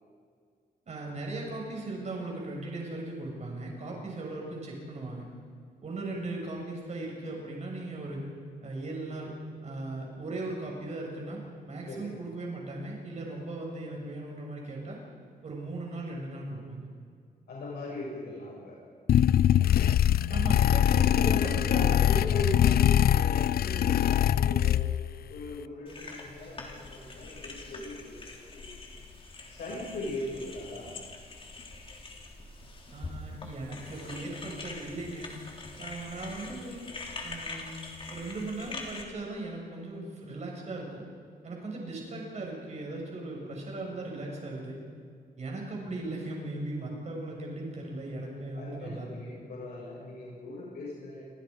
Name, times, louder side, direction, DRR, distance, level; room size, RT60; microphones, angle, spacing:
voice 1, 0.9-5.3 5.8-8.2 8.6-9.3 9.6-15.0 15.4-16.9 20.3-22.1 32.9-35.3 35.8-36.9 37.2-41.0 41.4-44.8 45.4-49.4, right 2 dB, 45° right, -1 dB, 6.9 m, -38 dB
voice 2, 11.9-12.2 17.5-18.8 21.2-25.0 25.3-28.7 29.5-30.9 48.5-51.2, left 2 dB, 85° left, -4 dB, 7.4 m, -39 dB
sound 1, 19.1-25.2, left 11 dB, 70° left, 0.5 m, -23 dB
sound 2, 25.9-39.0, left 3 dB, 35° left, 3.4 m, -44 dB
28.5 x 25.5 x 5.4 m, 2.1 s
wide cardioid pair, 170°, 16 cm